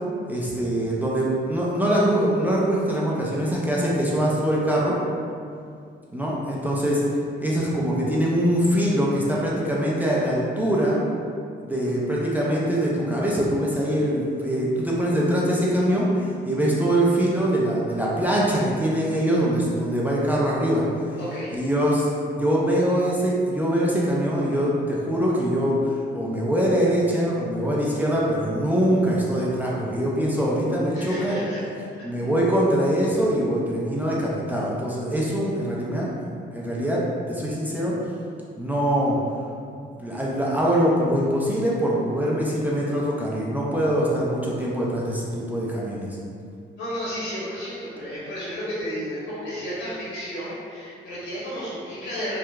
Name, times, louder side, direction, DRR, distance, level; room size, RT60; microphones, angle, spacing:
voice 1, 0.3-5.0 6.1-7.0 7.4-11.0 11.6-20.8 21.5-31.4 32.0-36.1 36.5-37.0 37.3-37.9 38.6-39.2 40.0-46.2, equal, 10° right, -6 dB, 0.4 m, -23 dB
voice 2, 21.2-21.6 30.9-31.6 46.8-52.4, equal, 65° left, -10 dB, 1.0 m, -32 dB
2.8 x 2.2 x 2.2 m, 2.3 s
cardioid pair, 90°, 20 cm